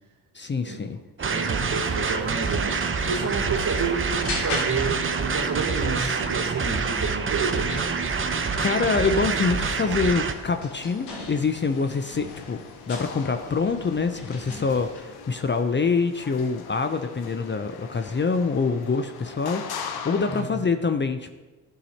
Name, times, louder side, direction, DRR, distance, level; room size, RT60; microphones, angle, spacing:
voice 1, 0.3-1.0 8.6-12.6 12.9-21.4, left 4 dB, 30° left, 8 dB, 0.6 m, -25 dB
sound 1, 1.2-15.0, left 2 dB, 80° left, 1.8 m, -41 dB
sound 2, 1.2-10.3, right 5 dB, 30° right, 0.8 m, -26 dB
voice 2, 1.2-7.8 20.2-20.5, right 4 dB, 50° right, 3 dB, 1.7 m, -30 dB
sound 3, 1.3-20.4, left 6 dB, 65° left, 1.0 m, -43 dB
11.5 x 4.9 x 4.3 m, 1.2 s
supercardioid pair, 50°, 40 cm